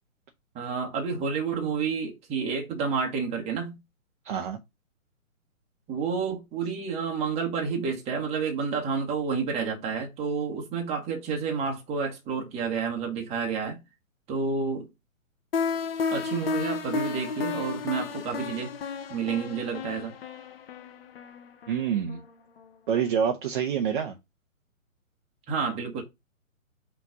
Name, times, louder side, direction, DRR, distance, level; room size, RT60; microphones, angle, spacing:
voice 1, 0.5-3.7 5.9-13.8 14.3-14.9 16.1-18.7 19.1-20.2 25.5-26.0, right 5 dB, 15° right, 1.5 m, -30 dB
voice 2, 4.2-4.6 21.7-22.2 22.9-24.2, right 8 dB, 35° right, 0.9 m, -27 dB
sound 1, 15.5-22.3, left 5 dB, 45° left, 0.9 m, -32 dB
5.7 x 3.4 x 5.3 m
figure-of-eight pair, 135°, 42 cm